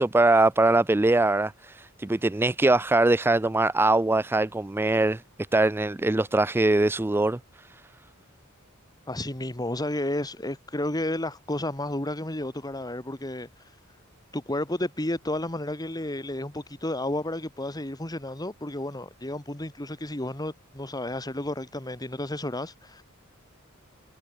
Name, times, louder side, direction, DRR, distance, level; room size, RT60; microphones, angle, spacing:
voice 1, 0.0-5.2 5.5-7.4, right 2 dB, 10° right, 0.4 m, -22 dB
voice 2, 9.1-13.5 14.3-23.0, left 1 dB, 20° left, 2.4 m, -32 dB
head